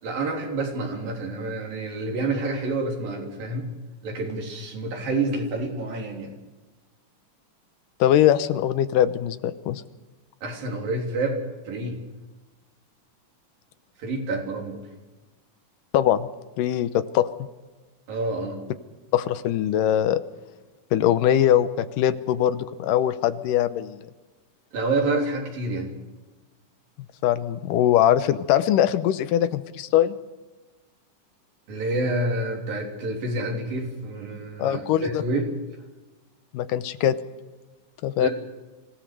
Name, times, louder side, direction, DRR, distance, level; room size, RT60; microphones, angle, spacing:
voice 1, 0.0-3.7 4.0-6.3 10.4-11.4 11.7-12.0 14.0-14.8 18.1-18.6 24.7-25.9 31.7-35.5 38.2-38.3, right 2 dB, 85° right, 1 dB, 5.3 m, -28 dB
voice 2, 8.0-9.8 15.9-16.3 16.6-17.3 19.1-20.2 20.9-24.1 27.2-30.2 34.6-35.2 36.5-37.2 38.0-38.3, left 11 dB, 80° left, 13 dB, 2.4 m, -22 dB
25.5 x 16.5 x 6.8 m, 1.2 s
omnidirectional pair, 3.9 m